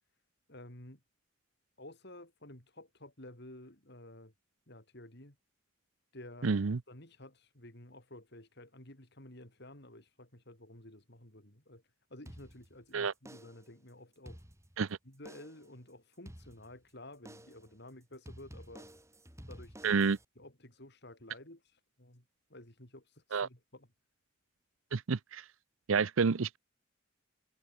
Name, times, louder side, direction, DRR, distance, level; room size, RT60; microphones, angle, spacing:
voice 1, 0.5-1.0 1.8-4.3 4.7-5.4 6.1-6.6 6.9-11.8 12.1-14.4 15.0-18.9 19.5-20.0 20.3-22.2 22.5-23.9, left 1 dB, 55° left, 5.1 m, -52 dB
voice 2, 6.4-6.8 12.9-13.1 14.8-15.0 19.8-20.2 23.3-23.5 24.9-25.4 25.9-26.6, right 5 dB, 80° right, 0.6 m, -29 dB
sound 1, 12.3-12.9 13.3-13.8 14.1-14.9 15.3-15.7 16.3-16.9 17.3-17.7 18.3-20.3, equal, 15° right, 6.9 m, -52 dB
head